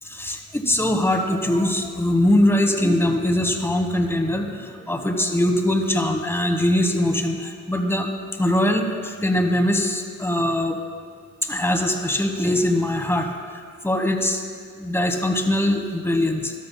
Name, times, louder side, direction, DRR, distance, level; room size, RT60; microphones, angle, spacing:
voice 1, 0.0-8.1 8.4-10.8 11.4-13.3 13.8-14.4 14.8-16.5, left 1 dB, 10° left, 4 dB, 1.1 m, -22 dB
13.5 x 12.0 x 2.2 m, 2.1 s
cardioid pair, 90°, 30 cm